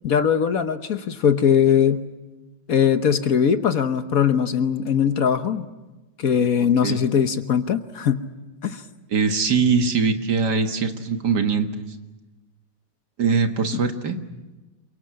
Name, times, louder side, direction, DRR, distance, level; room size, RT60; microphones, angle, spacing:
voice 1, 0.0-2.0 2.7-5.7 6.2-8.3 8.6-8.8, left 8 dB, 55° left, 10 dB, 1.3 m, -20 dB
voice 2, 9.1-12.0 13.2-14.2, right 5 dB, 60° right, 6 dB, 2.1 m, -22 dB
28.0 x 23.5 x 7.6 m, 1.1 s
omnidirectional pair, 2.0 m